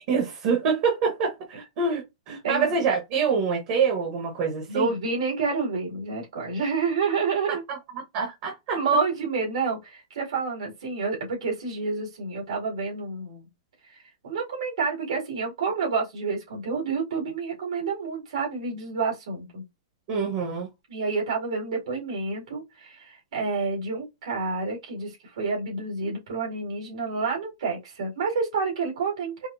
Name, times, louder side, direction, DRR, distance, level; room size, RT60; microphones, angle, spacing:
voice 1, 0.0-4.9 7.7-7.8 8.1-8.8 20.1-20.7, right 5 dB, 30° right, 1.0 m, -26 dB
voice 2, 2.3-2.7 4.7-7.6 8.7-13.4 13.9-19.6 20.9-29.5, right 4 dB, 75° right, 2.2 m, -29 dB
4.9 x 2.0 x 2.6 m
supercardioid pair, 175°, 3 cm